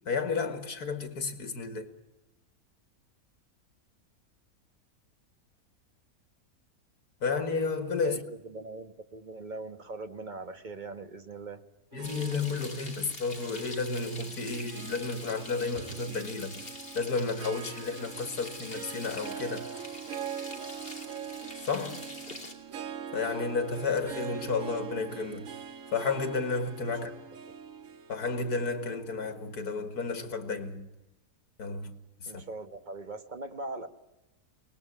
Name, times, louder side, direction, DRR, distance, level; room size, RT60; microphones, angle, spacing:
voice 1, 0.1-1.9 7.2-8.2 11.9-16.7 16.9-19.7 21.6-22.0 23.1-25.5 25.9-27.1 28.1-30.9 31.6-32.4, left 4 dB, 85° left, 2.4 m, -32 dB
voice 2, 8.0-11.6 27.0-27.1 32.3-33.9, right 3 dB, 30° right, 1.4 m, -41 dB
Harp, 11.9-30.4, right 8 dB, 60° right, 1.5 m, -43 dB
Frying (food), 12.0-22.5, left 2 dB, 35° left, 3.6 m, -45 dB
23.5 x 20.0 x 9.8 m
omnidirectional pair, 1.6 m